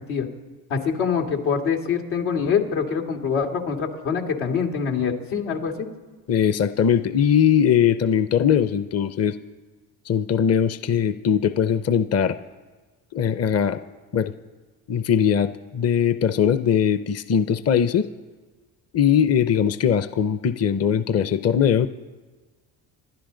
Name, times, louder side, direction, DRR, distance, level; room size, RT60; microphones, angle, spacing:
voice 1, 0.7-5.9, left 6 dB, 80° left, 0 dB, 2.2 m, -24 dB
voice 2, 6.3-9.4 10.1-12.4 13.1-13.8 14.1-14.3 14.9-18.1 18.9-21.9, left 8 dB, 30° left, 12 dB, 0.7 m, -20 dB
27.5 x 11.5 x 3.9 m, 1.3 s
hypercardioid pair, 60°, 49 cm